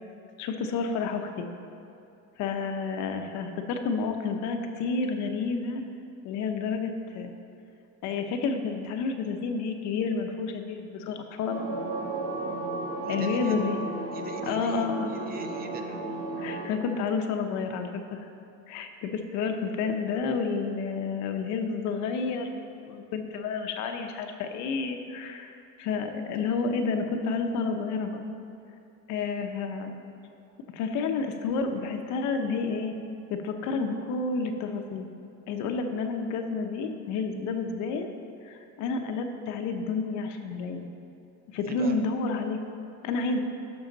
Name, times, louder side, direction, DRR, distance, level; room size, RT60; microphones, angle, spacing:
voice 1, 0.4-1.5 2.4-5.8 6.2-7.3 8.0-11.6 13.1-13.8 14.5-15.1 16.4-18.3 18.7-25.5 25.8-28.2 29.1-29.9 30.7-32.9 33.3-35.1 35.5-38.1 38.4-40.8 41.5-42.6 43.0-43.4, left 4 dB, 65° left, 5 dB, 0.9 m, -30 dB
sound 1, 11.5-16.7, right 2 dB, 85° right, 1.4 m, -34 dB
voice 2, 13.0-13.6 14.1-15.8 41.5-41.9, right 5 dB, 30° right, 5 dB, 0.5 m, -43 dB
12.5 x 6.3 x 4.0 m, 2.6 s
cardioid pair, 160°, 32 cm